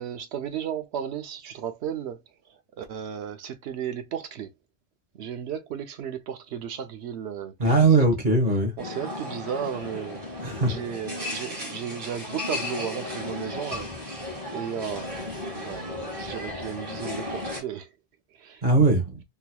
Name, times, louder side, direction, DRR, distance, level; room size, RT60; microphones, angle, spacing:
voice 1, 0.0-4.5 5.1-8.1 8.8-14.2 14.5-17.9 18.3-18.6, right 8 dB, 75° right, 0.9 m, -35 dB
voice 2, 7.6-8.7 10.4-10.7 18.6-19.2, right 3 dB, 45° right, 1.3 m, -20 dB
sound 1, 8.8-17.6, left 2 dB, 30° right, 2.1 m, -35 dB
3.8 x 2.9 x 2.2 m
omnidirectional pair, 1.1 m